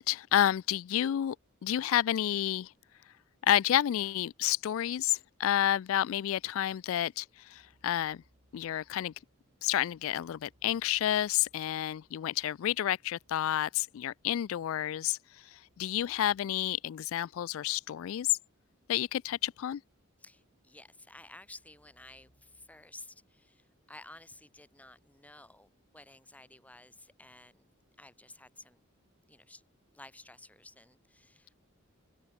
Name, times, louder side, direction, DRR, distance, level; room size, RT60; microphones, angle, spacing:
voice 1, 0.0-1.4 1.6-2.7 3.4-8.2 8.5-9.1 9.6-18.4 18.9-19.8, left 11 dB, 70° left, 0.3 m, -30 dB
sound 1, 7.5-26.6, equal, 55° right, 7.3 m, -73 dB
voice 2, 20.2-27.7 28.0-28.9 29.3-29.6 29.9-31.5, left 2 dB, 5° left, 2.0 m, -53 dB
open air
head